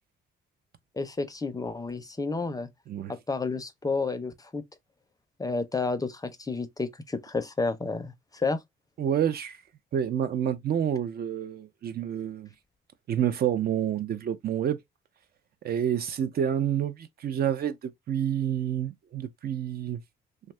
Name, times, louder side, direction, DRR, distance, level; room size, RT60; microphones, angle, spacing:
voice 1, 1.0-2.7 3.1-4.6 5.4-8.6, left 3 dB, 20° left, 0.5 m, -31 dB
voice 2, 9.0-9.6 9.9-12.5 13.1-14.8 15.6-20.0, right 9 dB, 50° right, 0.5 m, -28 dB
2.7 x 2.2 x 3.1 m
cardioid pair, 90°, 20 cm